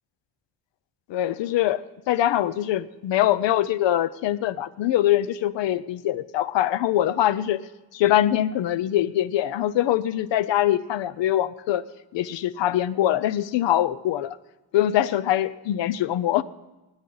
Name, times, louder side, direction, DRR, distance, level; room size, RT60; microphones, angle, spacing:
voice 1, 1.1-7.6 7.9-11.9 12.1-14.4 14.7-16.4, left 12 dB, 85° left, 16 dB, 0.7 m, -23 dB
24.5 x 9.8 x 3.9 m, 1.1 s
cardioid pair, 170°, 43 cm